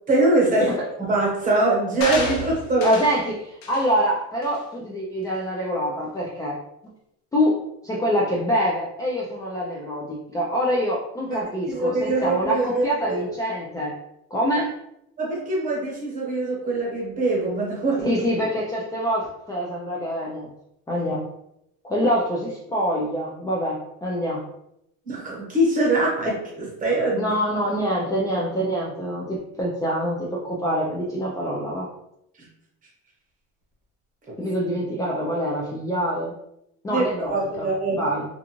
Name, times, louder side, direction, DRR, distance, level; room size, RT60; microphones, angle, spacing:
voice 1, 0.1-0.7 1.0-3.0 11.3-11.4 11.7-13.3 15.2-18.2 25.0-27.3 34.3-34.4 36.9-38.1, right 2 dB, 25° right, -3 dB, 1.1 m, -23 dB
sound 1, 2.0-3.2 3.6-3.9 4.4-4.6, left 4 dB, 85° left, 0.7 m, -31 dB
voice 2, 2.8-6.6 7.3-13.9 14.3-14.7 18.0-20.5 20.9-21.2 21.8-24.4 27.2-31.9 34.4-36.3 36.8-38.2, equal, 10° left, -4 dB, 0.4 m, -25 dB
2.4 x 2.4 x 2.9 m, 0.80 s
cardioid pair, 120°, 30 cm